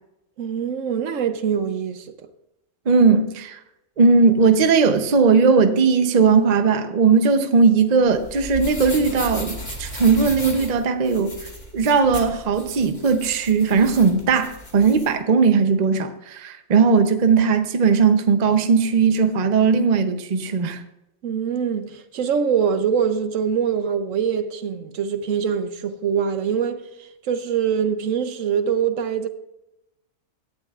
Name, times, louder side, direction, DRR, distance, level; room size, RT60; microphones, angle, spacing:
voice 1, 0.4-2.3 21.2-29.3, right 7 dB, 70° right, 1.0 m, -24 dB
voice 2, 2.9-3.6 4.0-11.4 11.7-20.8, right 5 dB, 40° right, 0.7 m, -18 dB
sound 1, 8.0-15.1, left 2 dB, 45° left, 2.4 m, -35 dB
16.5 x 11.5 x 2.4 m
omnidirectional pair, 1.5 m